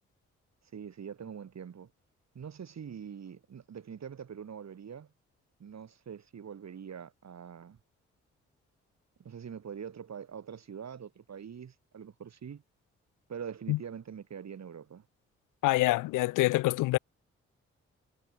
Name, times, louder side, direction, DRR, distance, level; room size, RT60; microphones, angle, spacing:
voice 1, 0.7-1.9 2.3-5.1 5.6-7.8 9.2-12.6 13.3-15.0, right 7 dB, 60° right, 5.9 m, -44 dB
voice 2, 15.6-17.0, left 19 dB, 80° left, 0.8 m, -26 dB
hypercardioid pair, 45°, 31 cm